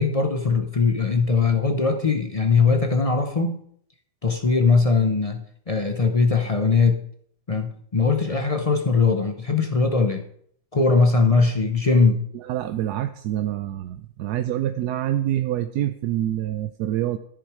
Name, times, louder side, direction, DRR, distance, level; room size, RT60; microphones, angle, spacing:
voice 1, 0.0-3.6 4.2-7.0 7.5-10.2 10.7-12.2, left 4 dB, 40° left, 6 dB, 0.5 m, -20 dB
voice 2, 12.3-17.2, right 12 dB, 75° right, 10 dB, 1.1 m, -26 dB
13.5 x 7.4 x 4.8 m, 0.65 s
omnidirectional pair, 1.8 m